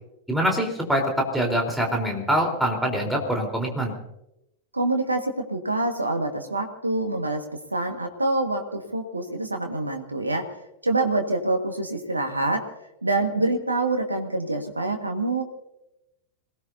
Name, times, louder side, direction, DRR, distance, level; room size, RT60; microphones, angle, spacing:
voice 1, 0.3-3.9, equal, ahead, 0 dB, 4.1 m, -24 dB
voice 2, 4.7-7.5 7.7-10.5 10.8-12.7 13.0-15.4, right 2 dB, 80° right, 4 dB, 1.8 m, -26 dB
27.0 x 18.5 x 2.8 m, 0.86 s
figure-of-eight pair, 90°, 0 cm